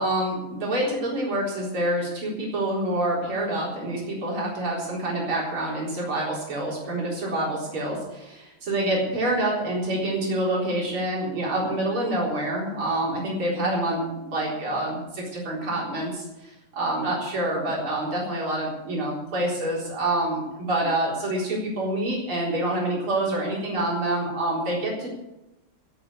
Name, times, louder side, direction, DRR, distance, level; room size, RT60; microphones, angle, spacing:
voice 1, 0.0-25.1, right 1 dB, 85° right, -4 dB, 4.9 m, -27 dB
14.0 x 8.6 x 8.5 m, 0.95 s
omnidirectional pair, 2.3 m